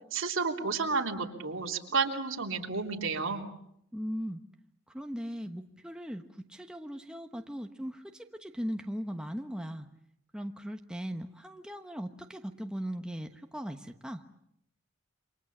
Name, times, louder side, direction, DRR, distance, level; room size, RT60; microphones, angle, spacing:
voice 1, 0.1-3.4, right 4 dB, 65° right, 2 dB, 3.4 m, -31 dB
voice 2, 3.9-4.4 4.9-6.2 6.5-9.9 10.3-14.2, equal, 5° right, 4 dB, 1.1 m, -38 dB
28.5 x 25.0 x 7.3 m, 0.74 s
head